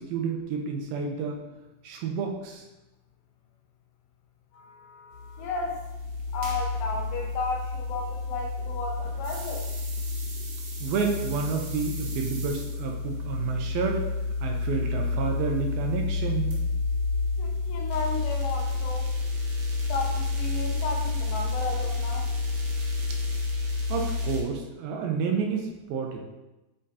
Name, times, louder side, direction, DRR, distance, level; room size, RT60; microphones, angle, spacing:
voice 1, 0.0-1.4 1.8-2.6 10.8-14.1 14.4-16.6 23.9-26.2, right 5 dB, 80° right, 2 dB, 2.5 m, -30 dB
voice 2, 4.5-5.8 6.3-9.7 17.4-19.1 19.9-22.3, left 3 dB, 80° left, 3 dB, 2.7 m, -34 dB
sound 1, 5.1-24.4, left 3 dB, 60° right, 2.0 m, -30 dB
8.8 x 5.0 x 2.8 m, 1.0 s
omnidirectional pair, 4.3 m